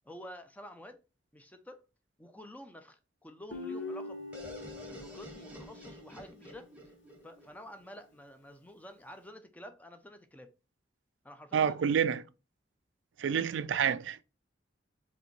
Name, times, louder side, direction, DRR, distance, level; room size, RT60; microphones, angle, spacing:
voice 1, 0.0-1.0 1.3-1.8 2.2-6.7 7.2-10.5 11.2-11.8, equal, 10° left, 0.6 m, -50 dB
Guitar, 3.5-6.8, left 3 dB, 90° left, 1.1 m, -43 dB
sound 1, 4.3-8.1, equal, 5° right, 1.2 m, -50 dB
voice 2, 11.5-12.2 13.2-14.2, right 7 dB, 75° right, 0.3 m, -28 dB
4.9 x 3.3 x 3.2 m
head